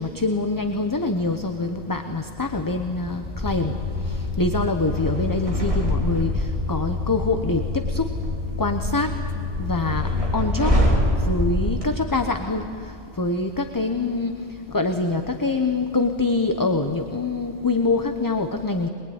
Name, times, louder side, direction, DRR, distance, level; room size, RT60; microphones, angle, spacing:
voice 1, 0.0-3.7 4.0-8.1 8.6-9.2 9.6-10.8 11.2-12.7 13.2-14.4 14.7-18.9, left 3 dB, 20° left, 6 dB, 0.9 m, -25 dB
sound 1, 2.5-11.1, left 3 dB, 80° left, 2.5 m, -38 dB
sound 2, 3.3-11.8, left 1 dB, 30° right, 3.8 m, -25 dB
23.0 x 22.0 x 9.5 m, 2.4 s
omnidirectional pair, 1.0 m